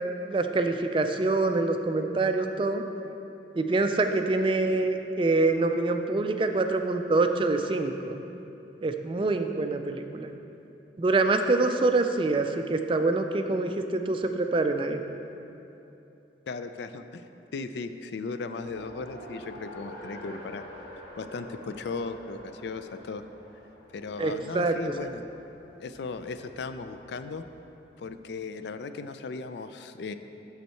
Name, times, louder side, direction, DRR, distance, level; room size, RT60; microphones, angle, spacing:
voice 1, 0.3-2.8 3.5-8.2 8.8-10.3 11.0-15.0 24.2-24.7, right 3 dB, 25° right, 6 dB, 0.3 m, -25 dB
voice 2, 16.5-17.2 17.5-20.6 21.2-23.2 23.9-25.2 25.8-27.4 28.0-30.1, left 4 dB, 65° left, 10 dB, 0.4 m, -37 dB
Race car auto racing, 18.5-27.6, equal, 50° left, 1.6 m, -47 dB
8.2 x 6.4 x 4.4 m, 2.9 s
head